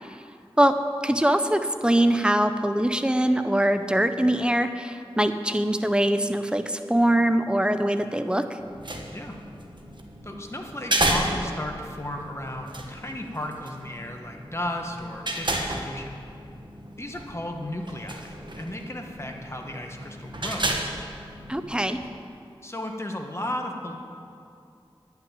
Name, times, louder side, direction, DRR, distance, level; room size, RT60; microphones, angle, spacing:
voice 1, 1.0-8.6 21.5-22.0, right 1 dB, 10° right, 9 dB, 0.7 m, -22 dB
sound 1, 8.6-22.1, right 1 dB, 50° right, 1.2 m, -33 dB
voice 2, 10.2-16.1 17.0-20.9 22.6-24.0, left 1 dB, 25° left, 2 dB, 1.3 m, -34 dB
10.5 x 6.0 x 8.7 m, 2.6 s
wide cardioid pair, 40°, 10 cm